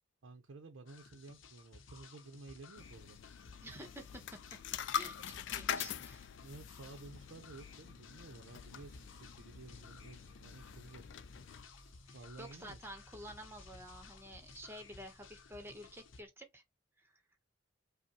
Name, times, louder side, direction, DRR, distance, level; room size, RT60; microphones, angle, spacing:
voice 1, 0.2-3.2 6.4-11.1 12.1-12.8, right 3 dB, 85° right, 0.6 m, -53 dB
sound 1, 0.9-16.2, left 5 dB, 80° left, 0.7 m, -58 dB
sound 2, 2.7-11.6, left 8 dB, 60° left, 0.3 m, -44 dB
voice 2, 3.6-4.4 4.9-6.3 12.1-16.6 17.0-17.2, equal, 10° right, 0.9 m, -50 dB
sound 3, 8.4-16.3, equal, 5° left, 2.1 m, -61 dB
5.1 x 2.1 x 2.8 m
head